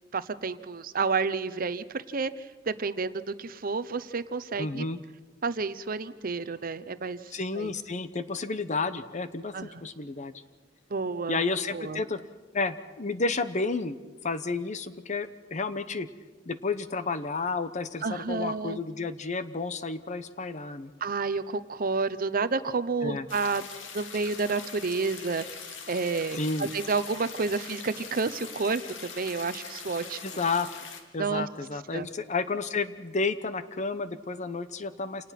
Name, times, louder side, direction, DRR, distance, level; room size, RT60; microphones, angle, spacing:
voice 1, 0.1-2.3 2.7-4.8 5.4-7.7 9.5-9.7 10.9-11.4 11.7-12.0 18.0-18.8 21.0-23.7 23.9-30.2 31.2-31.5 31.9-32.1, right 4 dB, 50° right, 14 dB, 0.8 m, -30 dB
voice 2, 4.6-5.0 7.3-10.3 11.3-12.2 12.5-14.0 14.2-16.1 16.5-20.9 23.0-23.3 26.3-26.7 30.2-30.7 31.1-35.3, left 3 dB, 40° left, 12 dB, 0.9 m, -31 dB
sound 1, 23.3-31.0, left 5 dB, 80° left, 2.2 m, -42 dB
27.5 x 19.0 x 5.9 m, 1.4 s
head